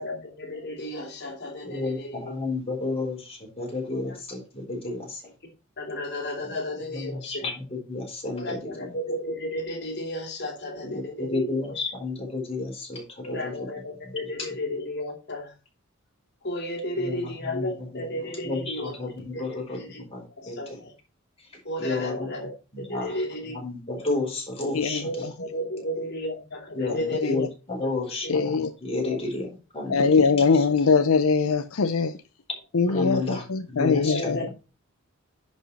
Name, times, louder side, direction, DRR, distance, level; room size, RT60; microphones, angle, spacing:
voice 1, 0.0-2.3 3.9-4.2 4.9-5.0 5.8-7.4 8.3-11.8 13.2-15.5 16.4-18.9 19.3-20.0 20.4-20.9 21.6-22.5 22.9-23.5 23.9-24.0 25.0-27.4 28.2-28.3 29.0-29.2 34.0-34.5, left 1 dB, 50° left, 2 dB, 3.0 m, -33 dB
voice 2, 1.6-5.2 6.9-8.9 10.8-13.0 13.3-13.7 14.0-14.1 17.0-18.0 18.4-19.8 20.1-20.8 21.8-22.5 22.7-25.2 26.7-29.5 29.7-30.7 32.9-34.5, left 3 dB, 30° left, 0 dB, 4.1 m, -32 dB
voice 3, 24.7-25.1 27.2-27.5 28.3-28.7 29.9-32.1 32.7-34.4, left 4 dB, 80° left, 10 dB, 0.6 m, -22 dB
10.5 x 5.2 x 4.2 m, 0.32 s
head